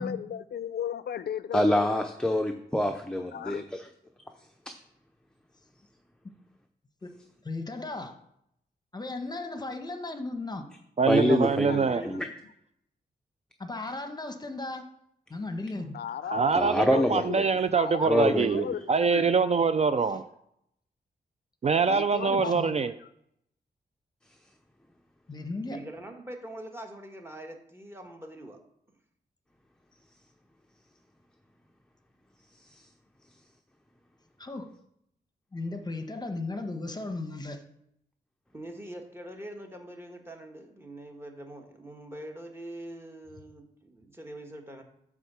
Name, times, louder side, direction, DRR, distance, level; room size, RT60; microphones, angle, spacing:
voice 1, 0.0-2.0 3.3-3.7 11.5-11.9 15.9-16.5 16.8-17.4 17.8-19.3 21.8-23.1, left 9 dB, 70° left, 14 dB, 0.4 m, -36 dB
voice 2, 1.5-3.8 4.7-4.8 11.1-12.3 16.5-17.4 18.0-18.7, left 1 dB, 5° left, 4 dB, 0.6 m, -26 dB
voice 3, 7.4-8.2 8.9-10.7 13.6-14.8 15.3-16.0 22.3-22.7 25.3-25.8 34.4-34.7 35.5-37.6, left 2 dB, 25° left, 7 dB, 1.0 m, -36 dB
voice 4, 11.0-12.0 16.3-20.2 21.6-22.9, right 5 dB, 40° right, 11 dB, 0.4 m, -24 dB
voice 5, 11.8-12.3 25.7-28.6 38.5-44.8, right 1 dB, 15° right, 3 dB, 1.4 m, -43 dB
9.1 x 3.6 x 6.8 m, 0.74 s
wide cardioid pair, 95°, 17 cm